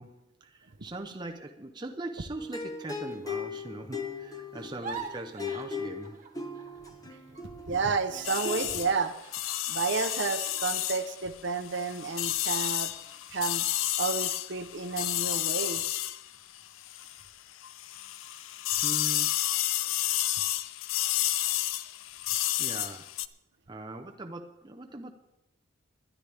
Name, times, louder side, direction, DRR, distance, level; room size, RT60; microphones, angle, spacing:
voice 1, 0.0-6.2 18.8-19.3 22.6-23.2 23.7-25.1, right 2 dB, 20° right, 3 dB, 0.7 m, -41 dB
sound 1, 2.4-9.1, left 4 dB, 15° left, 1.1 m, -39 dB
sound 2, 4.6-7.1 7.3-11.7 12.2-12.4 12.8-13.3, right 4 dB, 35° right, 1.5 m, -46 dB
voice 2, 7.7-9.1 9.7-12.9 13.3-13.7 14.0-15.8, right 4 dB, 55° right, 9 dB, 0.8 m, -31 dB
sound 3, 8.2-17.3 17.6-23.3, left 14 dB, 70° left, 0.5 m, -31 dB
20.5 x 11.0 x 3.5 m, 0.87 s
head